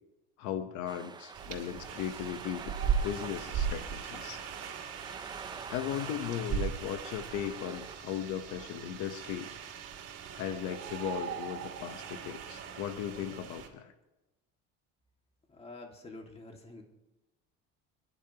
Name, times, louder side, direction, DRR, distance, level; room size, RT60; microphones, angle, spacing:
voice 1, 0.4-2.7 3.0-4.4 5.7-9.5 10.3-13.9, left 9 dB, 70° left, 9 dB, 1.0 m, -37 dB
sound 1, 0.9-8.0, right 5 dB, 15° right, 0.4 m, -47 dB
sound 2, 1.3-13.7, right 7 dB, 55° right, 3.0 m, -38 dB
voice 2, 15.5-16.8, left 2 dB, 20° left, 2 dB, 2.0 m, -47 dB
27.0 x 11.0 x 2.9 m, 1.0 s
cardioid pair, 125°, 30 cm